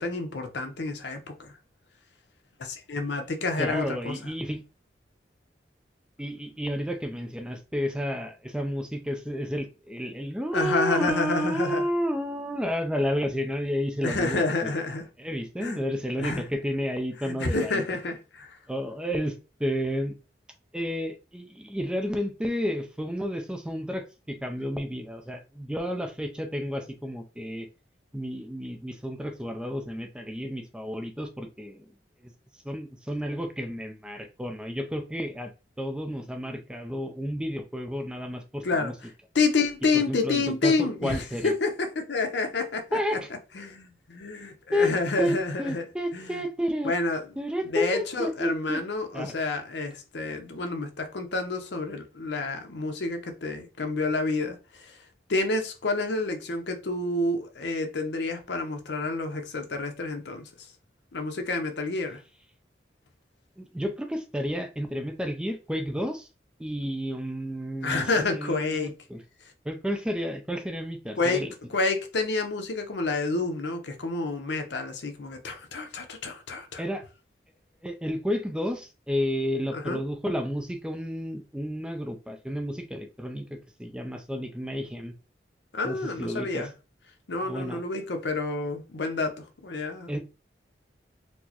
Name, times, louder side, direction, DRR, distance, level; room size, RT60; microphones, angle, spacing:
voice 1, 0.0-1.5 2.6-4.3 10.5-11.8 14.0-15.0 15.6-15.8 16.2-16.4 17.2-18.5 38.6-38.9 39.3-43.0 43.5-45.9 46.1-46.3 46.8-47.2 47.7-55.0 55.3-60.5 61.1-62.2 67.8-68.9 71.2-71.4 71.7-76.8 79.7-80.0 85.7-86.7 87.3-90.2, left 3 dB, 75° left, 0.7 m, -29 dB
voice 2, 3.6-4.6 6.2-14.7 15.2-17.8 18.7-20.1 20.7-27.7 28.1-31.9 32.5-35.5 35.8-38.9 39.9-40.7 41.0-41.5 42.9-43.3 44.7-46.9 47.4-48.8 49.1-49.3 63.6-66.3 66.6-69.2 69.6-71.5 76.8-77.0 77.8-85.1 85.8-86.7 87.4-87.8 90.1-90.2, equal, 5° right, 0.3 m, -31 dB
4.4 x 2.0 x 2.8 m
head